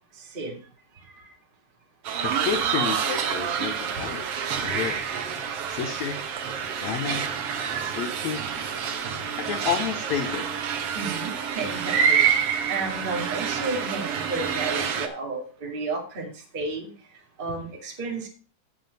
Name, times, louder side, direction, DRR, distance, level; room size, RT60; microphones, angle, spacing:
sound 1, 2.1-15.1, right 7 dB, 70° right, 1.3 m, -27 dB
voice 1, 2.2-4.3 4.6-5.0 5.7-6.2 6.8-7.3 7.8-8.4 9.4-10.6, left 8 dB, 90° left, 8 dB, 1.5 m, -30 dB
voice 2, 3.4-3.8 7.2-7.5 8.1-8.3 8.6-8.8 10.9-12.2 12.7-16.9 17.4-18.3, right 3 dB, 20° right, 0 dB, 1.5 m, -33 dB
Bowed string instrument, 6.5-10.6, right 1 dB, 55° right, 0.9 m, -47 dB
9.1 x 7.4 x 5.1 m, 0.37 s
omnidirectional pair, 4.1 m